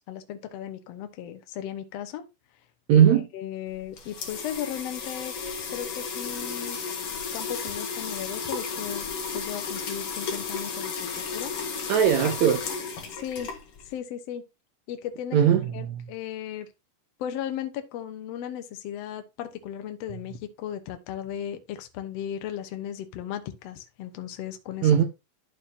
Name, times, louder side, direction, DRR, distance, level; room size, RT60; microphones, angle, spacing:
voice 1, 0.0-2.2 2.9-3.0 3.3-5.3 5.7-6.8 7.3-9.0 9.3-11.5 13.1-13.5 13.8-14.4 14.9-15.4 15.7-16.7 17.2-24.9, left 10 dB, 75° left, 1.4 m, -36 dB
voice 2, 2.9-3.3 11.9-12.6 15.3-16.0 24.8-25.0, right 9 dB, 85° right, 1.6 m, -19 dB
sound 1, 3.7-14.0, left 5 dB, 55° left, 1.8 m, -33 dB
12.5 x 4.5 x 2.7 m
omnidirectional pair, 4.1 m